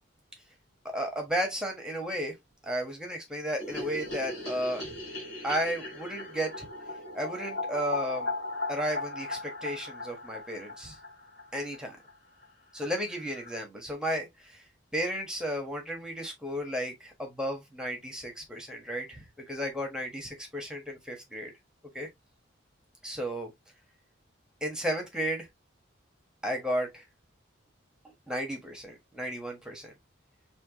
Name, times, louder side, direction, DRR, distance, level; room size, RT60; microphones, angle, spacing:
voice 1, 0.8-2.3 2.6-4.9 5.4-6.7 7.1-8.3 8.7-11.0 11.5-12.0 12.7-14.6 14.9-21.5 21.9-22.1 23.0-23.5 24.6-25.5 26.4-27.0 28.3-29.9, equal, 5° right, 1.4 m, -33 dB
sound 1, 3.6-11.8 12.1-12.2 12.4-12.5 12.8-12.9 13.1-13.6, left 2 dB, 50° left, 3.4 m, -38 dB
5.7 x 3.0 x 3.0 m
head